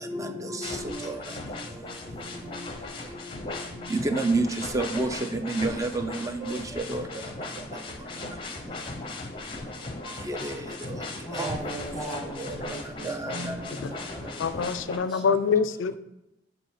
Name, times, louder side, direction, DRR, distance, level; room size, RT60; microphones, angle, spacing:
sound 1, 0.6-15.0, left 2 dB, 25° left, 0.6 m, -38 dB
voice 1, 3.9-4.4 4.7-5.1 5.5-5.9 6.5-6.6 6.9-7.0 10.3-10.5 11.4-11.5 13.1-13.2 13.4-13.5, right 2 dB, 15° right, 7 dB, 0.4 m, -26 dB
voice 2, 11.2-15.4, right 1 dB, ahead, -3 dB, 1.4 m, -40 dB
voice 3, 14.4-16.0, left 5 dB, 80° left, 13 dB, 0.4 m, -25 dB
7.3 x 2.6 x 4.9 m, 0.90 s
head